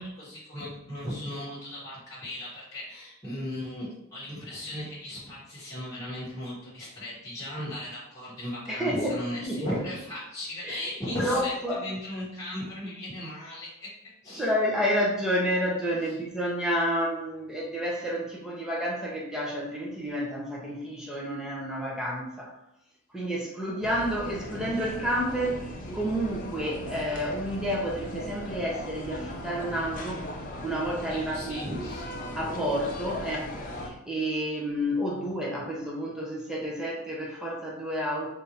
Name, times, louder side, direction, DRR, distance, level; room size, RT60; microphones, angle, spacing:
voice 1, 0.0-13.9 14.2-14.5 31.1-32.2 32.6-32.7, left 1 dB, 15° left, -8 dB, 1.3 m, -37 dB
voice 2, 8.7-9.2 9.4-9.8 10.6-10.8 11.2-11.8 14.3-22.6 23.1-31.7 32.3-33.5 33.8-38.3, equal, 5° right, -3 dB, 0.8 m, -30 dB
sound 1, 23.8-33.9, left 1 dB, 35° left, 0.5 m, -38 dB
3.5 x 2.7 x 4.2 m, 0.87 s
head